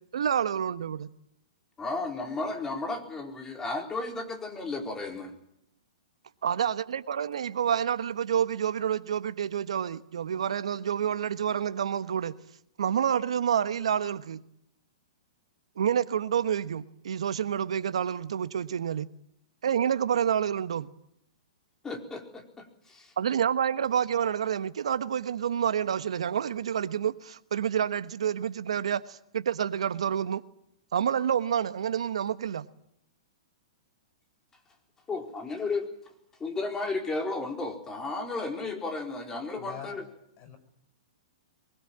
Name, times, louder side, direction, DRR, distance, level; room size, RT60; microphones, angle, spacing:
voice 1, 0.1-1.1 6.4-12.4 12.8-14.4 15.8-19.1 19.6-20.9 23.2-30.4 30.9-32.6, right 8 dB, 75° right, 1.3 m, -28 dB
voice 2, 1.8-5.3 21.8-23.1 35.1-35.9 36.4-40.0, left 3 dB, 15° left, 4.4 m, -33 dB
voice 3, 39.6-40.1 40.4-40.6, left 8 dB, 40° left, 5.1 m, -44 dB
23.0 x 21.0 x 8.9 m
hypercardioid pair, 120°, 3 cm